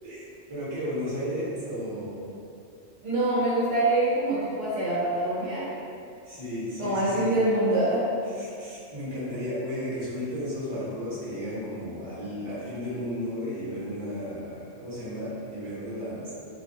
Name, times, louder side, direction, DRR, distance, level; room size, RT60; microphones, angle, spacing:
voice 1, 0.5-2.2 6.2-7.3 8.2-16.3, equal, 25° right, -10 dB, 0.7 m, -34 dB
voice 2, 3.0-5.7 6.8-8.1, right 1 dB, 65° right, -9 dB, 0.8 m, -25 dB
2.5 x 2.2 x 2.6 m, 2.5 s
omnidirectional pair, 1.3 m